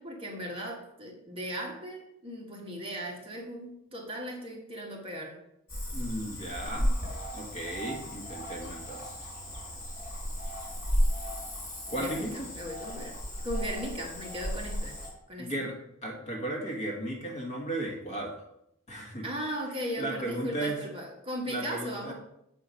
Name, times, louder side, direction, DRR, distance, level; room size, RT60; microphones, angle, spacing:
voice 1, 0.0-5.4 11.9-13.2 13.4-15.0 15.3-15.5 19.2-22.1, equal, 25° right, -1 dB, 1.5 m, -37 dB
Cricket / Frog, 5.7-15.1, equal, 55° left, 2.7 m, -34 dB
voice 2, 5.9-6.9 7.3-9.3 11.9-12.5 15.4-18.4 18.9-19.2 20.0-20.8 21.5-22.1, right 1 dB, 35° left, 0 dB, 1.4 m, -35 dB
7.7 x 4.3 x 5.2 m, 0.79 s
head